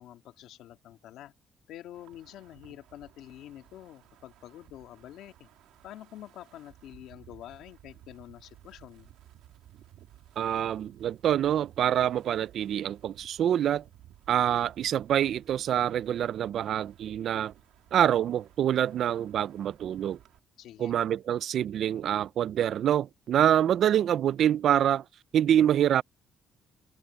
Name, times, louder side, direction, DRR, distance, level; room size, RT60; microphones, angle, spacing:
voice 1, 0.0-1.3 1.7-5.5 5.8-9.1 20.6-21.0, left 12 dB, 85° left, 2.1 m, -47 dB
Wind, 1.9-20.4, right 13 dB, 90° right, 2.4 m, -57 dB
voice 2, 10.4-13.8 14.3-17.5 17.9-20.2 20.8-25.0 25.3-26.0, right 10 dB, 70° right, 0.5 m, -26 dB
cardioid pair, 90°, 0 cm